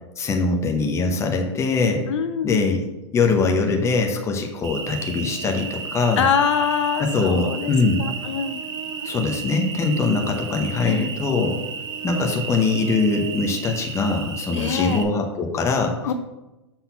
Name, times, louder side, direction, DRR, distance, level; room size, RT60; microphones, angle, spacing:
voice 1, 0.2-2.1 2.4-2.8 3.1-6.3 7.0-8.0 9.0-11.6 12.0-15.9, left 3 dB, 20° left, 2 dB, 0.9 m, -22 dB
voice 2, 2.1-2.6 6.2-7.7 8.0-8.6 10.8-11.1 14.5-15.0 16.0-16.1, left 7 dB, 75° left, 10 dB, 0.8 m, -24 dB
Cricket, 4.6-15.0, right 6 dB, 30° right, 0.8 m, -33 dB
6.0 x 4.1 x 5.7 m, 1.0 s
hypercardioid pair, 130°, 15 cm